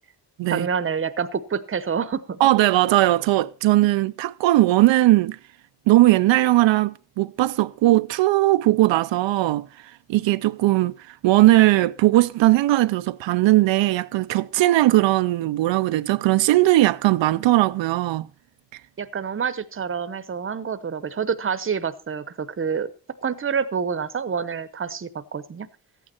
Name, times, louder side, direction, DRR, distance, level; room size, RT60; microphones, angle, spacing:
voice 1, 0.5-2.4 19.0-22.9 23.2-25.7, right 6 dB, 30° right, 0.8 m, -27 dB
voice 2, 2.4-5.4 5.9-9.7 10.1-18.3, right 16 dB, 90° right, 0.5 m, -19 dB
14.0 x 9.0 x 4.3 m
cardioid pair, 110°, 43 cm